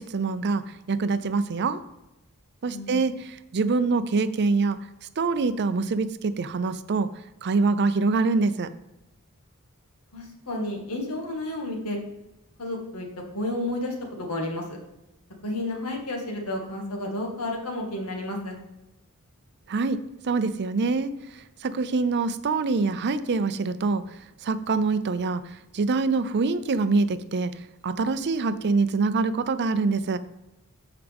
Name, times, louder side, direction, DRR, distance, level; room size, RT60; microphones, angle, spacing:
voice 1, 0.0-1.8 2.6-4.9 5.2-7.1 7.4-8.7 19.7-30.2, right 4 dB, 50° right, 13 dB, 0.5 m, -25 dB
voice 2, 2.7-3.0 10.1-12.0 12.6-13.1 13.3-14.6 15.4-18.6, left 1 dB, 80° left, 1 dB, 2.0 m, -31 dB
13.5 x 4.9 x 3.5 m, 0.95 s
head